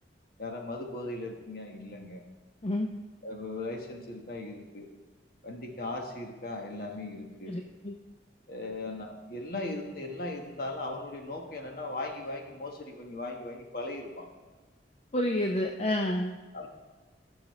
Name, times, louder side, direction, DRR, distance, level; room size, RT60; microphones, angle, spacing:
voice 1, 0.4-2.2 3.2-4.9 5.4-7.5 8.5-14.3 16.5-16.7, left 2 dB, 55° left, 2 dB, 1.3 m, -38 dB
voice 2, 7.5-8.0 15.1-16.4, left 1 dB, 35° left, 3 dB, 0.5 m, -29 dB
15.0 x 6.3 x 3.1 m, 1.3 s
head